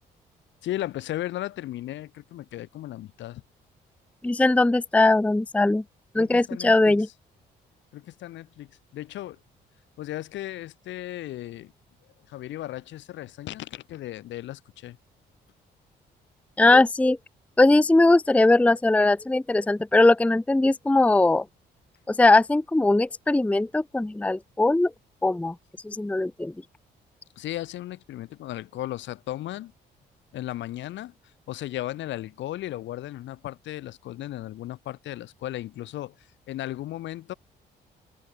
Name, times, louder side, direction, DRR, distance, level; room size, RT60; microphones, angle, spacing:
voice 1, 0.6-3.4 6.2-7.0 7.9-9.4 10.0-11.7 12.3-15.0 27.4-29.7 30.3-31.1 31.5-37.3, left 14 dB, 80° left, 7.0 m, -36 dB
voice 2, 4.2-5.8 6.1-7.1 16.6-17.2 17.6-21.4 22.1-24.9 25.2-25.5 25.8-26.5, left 2 dB, 5° left, 0.6 m, -20 dB
supercardioid pair, 75°, 19 cm